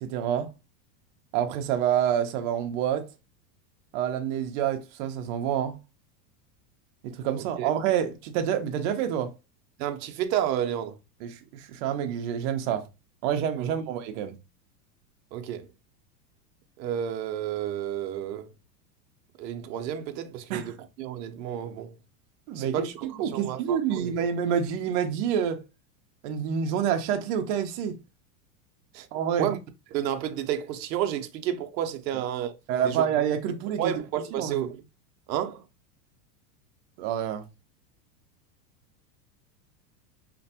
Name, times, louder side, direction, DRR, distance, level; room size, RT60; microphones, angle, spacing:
voice 1, 0.0-0.5 1.3-3.1 3.9-5.8 7.0-9.3 11.2-12.8 13.2-14.4 20.5-20.7 22.5-25.6 26.2-28.0 29.1-29.5 32.7-33.9 34.4-34.6 37.0-37.4, right 9 dB, 50° right, 0.5 m, -27 dB
voice 2, 9.8-11.0 13.6-13.7 15.3-15.7 16.8-18.5 19.4-21.9 22.6-24.2 28.9-29.1 29.4-29.6 29.9-32.5 32.8-33.0 33.8-34.8 35.3-35.6, right 10 dB, 90° right, 0.7 m, -31 dB
2.5 x 2.1 x 2.7 m
supercardioid pair, 140°, 50 cm